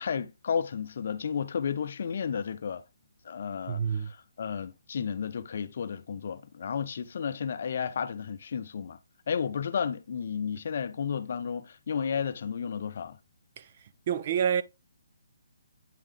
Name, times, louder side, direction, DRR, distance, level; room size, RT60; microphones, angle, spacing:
voice 1, 0.0-2.8 3.2-9.0 9.3-13.2, left 7 dB, 35° left, 0.6 m, -32 dB
voice 2, 3.7-4.1 13.6-13.7 14.1-14.6, right 8 dB, 25° right, 0.3 m, -27 dB
9.1 x 3.7 x 3.3 m
hypercardioid pair, 180°, 0 cm